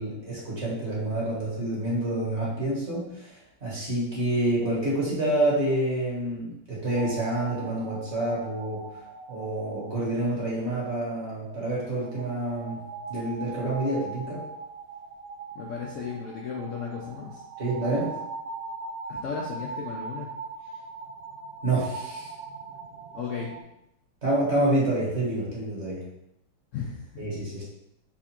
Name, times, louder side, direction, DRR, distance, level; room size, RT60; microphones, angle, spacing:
voice 1, 0.0-8.8 9.3-12.8 13.1-14.4 17.6-18.0 21.6-22.3 24.2-26.0 27.2-27.6, right 1 dB, 40° right, -6 dB, 1.5 m, -28 dB
sound 1, 6.9-23.6, right 4 dB, 80° right, 0.7 m, -40 dB
voice 2, 15.5-17.5 17.8-18.1 19.1-20.3 23.1-23.5 26.7-27.3, left 6 dB, 85° left, -2 dB, 0.6 m, -35 dB
4.3 x 2.4 x 4.3 m, 0.81 s
omnidirectional pair, 2.0 m